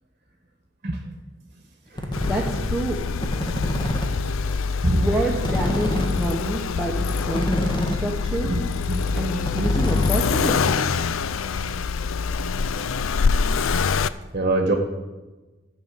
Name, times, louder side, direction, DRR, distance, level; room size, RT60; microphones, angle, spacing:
sound 1, 2.0-2.6 3.1-4.1 4.4-4.5 4.7-4.8 5.0-5.1 5.4-8.1 8.4-8.6 8.9-9.0 9.1-10.6, equal, 25° left, 1.5 m, -28 dB
Accelerating revving vroom, 2.1-14.1, left 5 dB, 85° left, 0.5 m, -25 dB
voice 1, 2.2-3.0 5.0-8.5 9.2-11.0, right 1 dB, ahead, -4 dB, 1.2 m, -27 dB
voice 2, 14.3-14.8, right 1 dB, 40° right, 4 dB, 1.3 m, -22 dB
14.5 x 5.6 x 8.4 m, 1.2 s
head